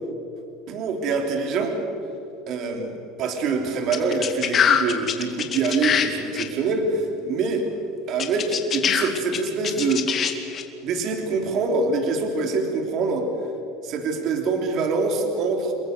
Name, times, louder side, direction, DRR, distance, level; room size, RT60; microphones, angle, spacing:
voice 1, 0.7-1.8 2.5-7.6 8.1-10.1 10.8-13.3 13.8-15.7, right 4 dB, 50° right, 4 dB, 3.3 m, -25 dB
sound 1, 3.9-6.1 6.3-6.4 8.2-10.6, left 8 dB, 35° left, 2.4 m, -23 dB
29.0 x 22.0 x 6.6 m, 2.9 s
supercardioid pair, 135°, 0 cm